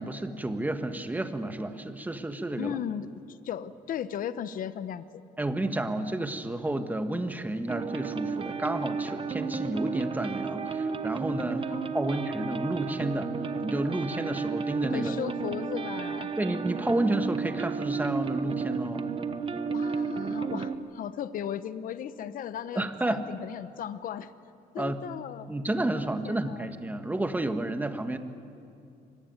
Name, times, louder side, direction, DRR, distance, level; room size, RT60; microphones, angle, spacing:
voice 1, 0.0-2.7 5.4-13.3 13.6-15.1 16.4-19.1 22.7-23.2 24.8-25.0 25.5-28.2, right 1 dB, 10° right, 7 dB, 1.6 m, -31 dB
voice 2, 2.6-5.0 11.7-12.2 14.9-16.3 19.7-24.3 24.7-25.5 26.0-26.7, left 9 dB, 55° left, 13 dB, 1.0 m, -36 dB
sound 1, 7.7-20.8, right 5 dB, 30° right, 1.2 m, -32 dB
24.5 x 19.5 x 9.6 m, 2.5 s
cardioid pair, 110°, 17 cm